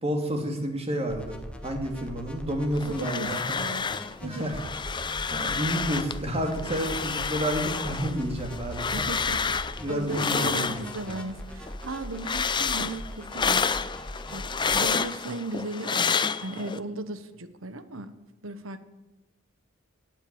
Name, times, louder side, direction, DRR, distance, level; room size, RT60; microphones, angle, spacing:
voice 1, 0.0-1.4 1.6-3.6 4.2-4.6 5.3-9.1 9.8-10.7, equal, 30° right, 4 dB, 2.5 m, -30 dB
sound 1, 1.1-14.8, equal, 5° left, 1.6 m, -41 dB
sound 2, 2.8-4.1 4.4-6.2 6.5-11.3 11.6-16.8, left 5 dB, 25° left, 0.5 m, -29 dB
voice 2, 2.8-4.5 8.9-9.6 9.9-13.7 14.3-18.1 18.4-18.8, right 2 dB, 70° right, 12 dB, 1.2 m, -36 dB
17.0 x 8.3 x 8.8 m, 1.1 s
head